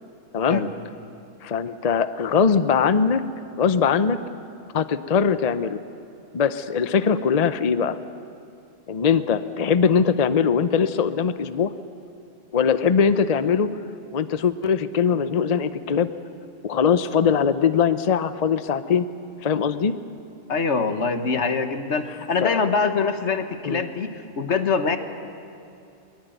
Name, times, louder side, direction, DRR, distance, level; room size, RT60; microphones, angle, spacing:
voice 1, 1.4-3.2 3.6-4.2 4.7-5.8 6.3-8.0 8.9-11.7 12.5-13.7 14.1-16.1 16.6-19.1 19.4-19.9 22.4-22.6 23.6-23.8, left 6 dB, 40° left, 12 dB, 0.7 m, -21 dB
voice 2, 20.5-25.0, left 4 dB, 75° left, 8 dB, 1.6 m, -24 dB
22.0 x 21.0 x 9.2 m, 2.7 s
omnidirectional pair, 1.2 m